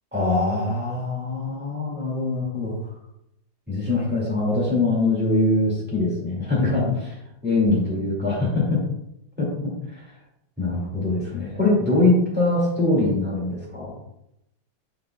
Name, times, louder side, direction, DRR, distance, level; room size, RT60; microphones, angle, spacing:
voice 1, 0.1-2.8 3.7-7.2 7.4-8.8 9.4-10.0 10.6-13.9, left 2 dB, 5° right, -5 dB, 1.9 m, -23 dB
6.8 x 6.3 x 2.2 m, 0.83 s
omnidirectional pair, 2.1 m